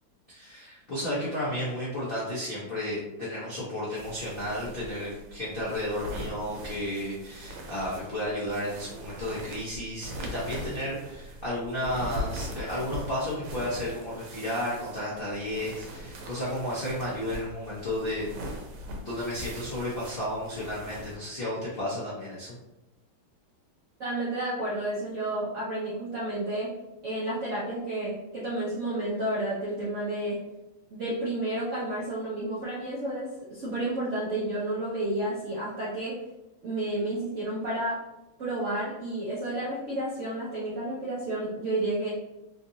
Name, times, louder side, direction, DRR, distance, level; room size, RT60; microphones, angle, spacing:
voice 1, 0.3-18.3 19.0-22.5, left 1 dB, 80° left, -8 dB, 0.5 m, -33 dB
sound 1, 4.0-21.2, equal, 90° right, 1.5 m, -41 dB
voice 2, 24.0-26.7 27.0-30.4 30.9-36.2 36.6-38.0 38.4-42.1, right 1 dB, 70° right, -8 dB, 0.7 m, -31 dB
3.7 x 2.7 x 2.6 m, 0.97 s
omnidirectional pair, 2.3 m